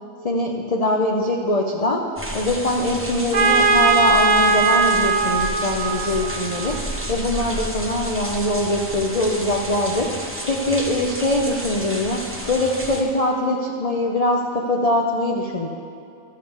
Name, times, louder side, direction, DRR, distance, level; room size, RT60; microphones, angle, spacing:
voice 1, 0.2-15.7, left 1 dB, 75° left, 0 dB, 0.3 m, -23 dB
sound 1, 2.2-13.0, right 1 dB, 10° right, 0.7 m, -31 dB
Trumpet, 3.3-7.1, right 4 dB, 75° right, 0.4 m, -19 dB
12.5 x 5.0 x 7.3 m, 2.7 s
omnidirectional pair, 1.7 m